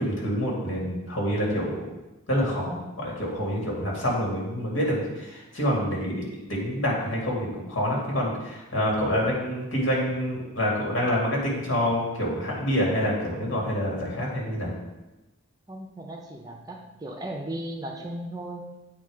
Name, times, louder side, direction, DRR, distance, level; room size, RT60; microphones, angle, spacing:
voice 1, 0.0-1.8 2.3-14.7, equal, 75° left, -3 dB, 2.3 m, -27 dB
voice 2, 15.7-18.6, right 1 dB, 20° right, 2 dB, 0.6 m, -36 dB
8.9 x 4.2 x 4.9 m, 1.0 s
head